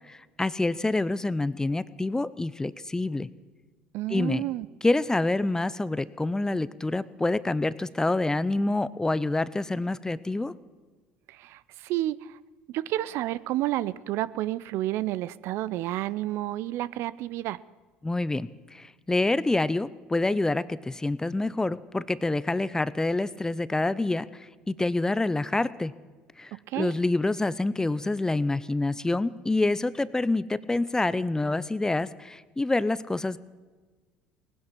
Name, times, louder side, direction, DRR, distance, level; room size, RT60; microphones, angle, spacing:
voice 1, 0.1-3.3 4.1-4.4 4.8-10.5 18.0-25.9 26.4-33.4, left 2 dB, 15° left, 18 dB, 0.6 m, -27 dB
voice 2, 3.9-4.7 11.3-12.4 12.7-17.6 26.5-27.0, right 15 dB, 65° right, 18 dB, 0.5 m, -30 dB
18.5 x 10.5 x 7.4 m, 1.4 s
hypercardioid pair, 65°, 5 cm